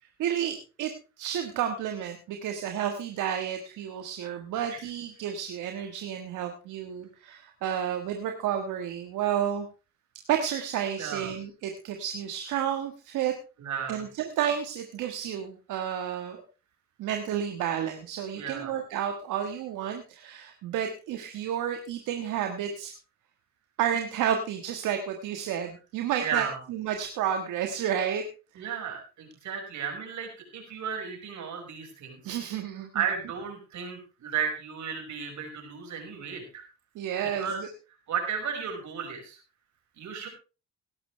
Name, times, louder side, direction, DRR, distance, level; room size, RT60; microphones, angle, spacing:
voice 1, 0.2-0.9 1.2-9.7 10.3-13.3 13.9-16.4 17.0-22.9 23.8-28.2 28.5-28.7 32.2-32.9 36.9-37.7, right 9 dB, 90° right, 5 dB, 1.6 m, -31 dB
voice 2, 11.0-11.3 13.6-14.0 18.3-18.7 26.2-26.6 28.6-32.4 32.9-36.7 37.4-37.6 38.1-39.4 40.0-40.3, right 7 dB, 70° right, 3 dB, 5.5 m, -34 dB
17.5 x 12.0 x 3.3 m, 0.32 s
cardioid pair, 90°, 30 cm